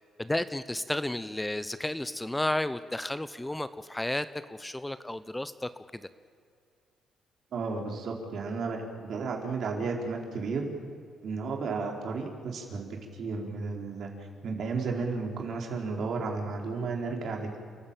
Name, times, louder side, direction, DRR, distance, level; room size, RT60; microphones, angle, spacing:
voice 1, 0.2-6.0, left 1 dB, 10° left, 13 dB, 0.9 m, -32 dB
voice 2, 7.5-10.7 11.2-14.1 14.4-17.6, right 4 dB, 65° right, 2 dB, 4.5 m, -33 dB
30.0 x 14.5 x 9.0 m, 2.3 s
cardioid pair, 90°, 0 cm